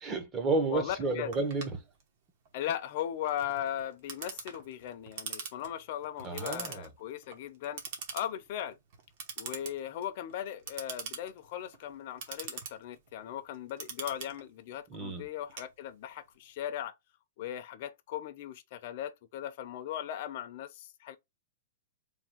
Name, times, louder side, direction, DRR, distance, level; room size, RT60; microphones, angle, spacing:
voice 1, 0.0-1.8 6.2-6.9 14.9-15.2, right 3 dB, 15° right, 0.8 m, -31 dB
voice 2, 0.7-1.3 2.5-7.8 8.1-8.8 9.4-16.9 17.4-21.2, left 11 dB, 45° left, 0.6 m, -38 dB
Clock, 1.3-16.3, right 6 dB, 45° right, 1.1 m, -44 dB
3.5 x 2.3 x 4.4 m
hypercardioid pair, 165°, 0 cm